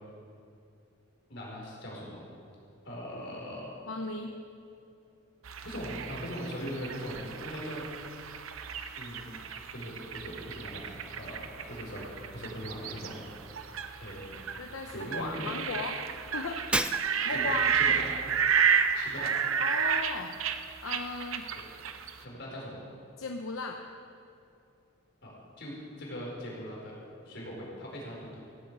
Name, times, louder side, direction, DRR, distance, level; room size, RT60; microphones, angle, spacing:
voice 1, 1.3-2.2 2.8-3.7 5.6-7.8 9.0-9.4 9.7-13.2 14.0-14.4 14.9-15.5 17.3-17.5 17.7-18.0 18.9-19.3 21.5-21.6 22.2-22.8 25.2-27.0 27.2-28.4, equal, 60° left, -3 dB, 4.8 m, -40 dB
voice 2, 3.9-4.4 14.6-16.0 16.3-16.6 17.2-17.8 19.6-20.3 20.8-21.5 23.2-23.8, left 3 dB, 85° left, 2 dB, 0.9 m, -36 dB
sound 1, 5.4-22.2, right 7 dB, 85° right, 0.8 m, -32 dB
Shatter, 16.7-17.5, right 2 dB, 5° right, 0.4 m, -31 dB
16.0 x 8.7 x 8.2 m, 2.6 s
head